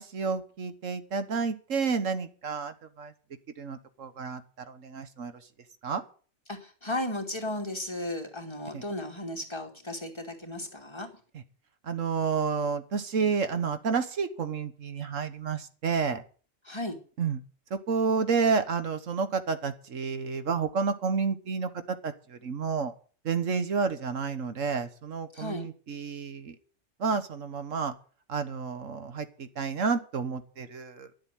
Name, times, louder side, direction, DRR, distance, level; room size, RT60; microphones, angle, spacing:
voice 1, 0.0-3.1 3.6-5.4 5.8-6.0 8.7-8.8 11.3-11.4 11.8-16.2 17.2-17.4 17.7-22.9 23.2-26.6 27.0-27.9 28.3-31.1, right 5 dB, 80° right, 10 dB, 1.6 m, -30 dB
voice 2, 6.5-11.1 16.6-17.0 25.3-25.7, left 1 dB, 20° left, 0 dB, 2.8 m, -35 dB
12.0 x 7.9 x 9.2 m, 0.41 s
omnidirectional pair, 1.3 m